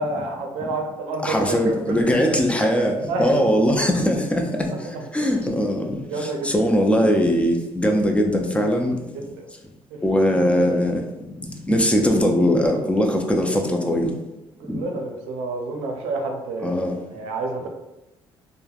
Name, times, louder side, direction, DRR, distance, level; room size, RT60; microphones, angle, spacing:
voice 1, 0.0-2.3 3.1-3.5 4.7-5.0 6.0-6.5 9.1-9.3 14.6-17.7, right 2 dB, 85° right, 2 dB, 0.5 m, -29 dB
voice 2, 1.2-4.7 5.1-9.0 10.0-11.0 11.7-14.1 14.7-14.8 16.6-17.0, equal, 10° left, 2 dB, 0.5 m, -20 dB
3.2 x 2.1 x 2.3 m, 0.97 s
supercardioid pair, 75°, 10 cm